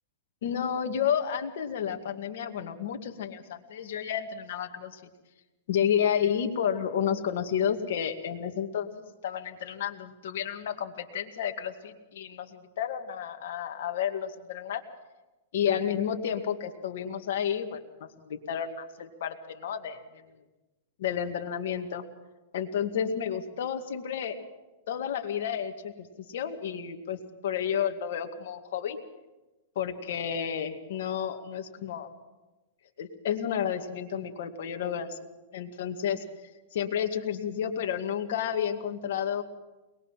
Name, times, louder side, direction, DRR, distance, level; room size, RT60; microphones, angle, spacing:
voice 1, 0.4-5.0 5.7-14.8 15.5-20.2 21.0-22.0 22.5-24.4 24.9-29.0 29.8-32.1 33.0-35.2 35.5-36.2 36.7-39.4, left 8 dB, 70° left, 6 dB, 2.1 m, -31 dB
22.5 x 20.5 x 5.8 m, 1.1 s
hypercardioid pair, 145°, 0 cm